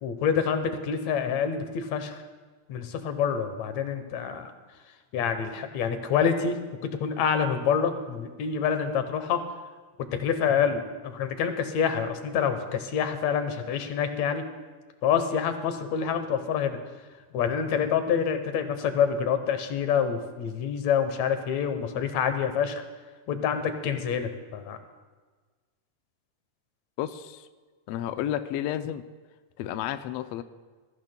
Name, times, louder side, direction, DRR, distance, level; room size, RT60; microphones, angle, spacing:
voice 1, 0.0-2.2 2.7-4.5 5.1-6.6 6.9-9.4 10.0-14.4 15.0-16.8 17.3-22.8 23.3-24.8, left 7 dB, 70° left, 8 dB, 2.1 m, -27 dB
voice 2, 27.0-27.5 27.9-29.0 29.6-30.4, left 11 dB, 85° left, 9 dB, 1.4 m, -31 dB
21.0 x 14.0 x 2.2 m, 1.4 s
omnidirectional pair, 3.4 m